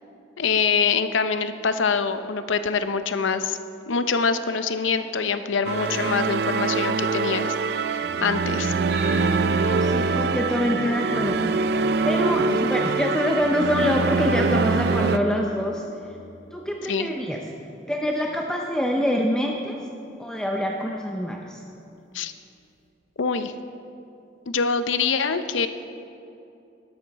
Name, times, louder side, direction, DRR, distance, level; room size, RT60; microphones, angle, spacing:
voice 1, 0.4-3.6 3.9-8.7 12.5-12.6 16.8-17.1 22.1-22.3 23.2-23.5 24.5-25.7, left 5 dB, 85° left, 10 dB, 0.6 m, -25 dB
sound 1, 5.6-15.2, right 4 dB, 55° right, 0.4 m, -24 dB
sound 2, 8.9-17.6, right 2 dB, 75° right, 2.9 m, -39 dB
voice 2, 9.5-11.5 12.0-15.8 16.5-17.4 17.9-19.8 20.2-21.6, equal, 5° left, 0 dB, 0.5 m, -25 dB
12.5 x 12.5 x 4.1 m, 2.7 s
head